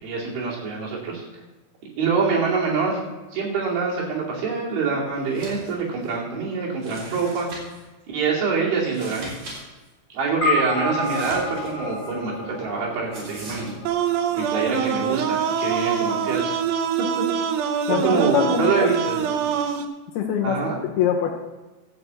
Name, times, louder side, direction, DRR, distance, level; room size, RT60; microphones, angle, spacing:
voice 1, 0.0-1.2 2.0-3.0 3.3-7.5 8.1-9.4 10.1-13.7 14.4-16.5 17.2-17.3 17.9-19.2 20.4-20.8, right 5 dB, 60° right, -4 dB, 4.3 m, -25 dB
sound 1, 5.2-5.7 6.0-6.1 6.8-7.8 8.8-9.6 9.8-9.9 11.0-12.1 13.1-13.7, right 1 dB, 40° right, 5.0 m, -39 dB
sound 2, 10.4-15.0, left 2 dB, 55° left, 1.6 m, -29 dB
sound 3, 13.9-19.9, right 7 dB, 75° right, 2.2 m, -24 dB
voice 2, 17.9-18.9 20.2-21.3, left 8 dB, 75° left, 3 dB, 2.5 m, -24 dB
13.5 x 5.4 x 8.1 m, 1.2 s
omnidirectional pair, 5.1 m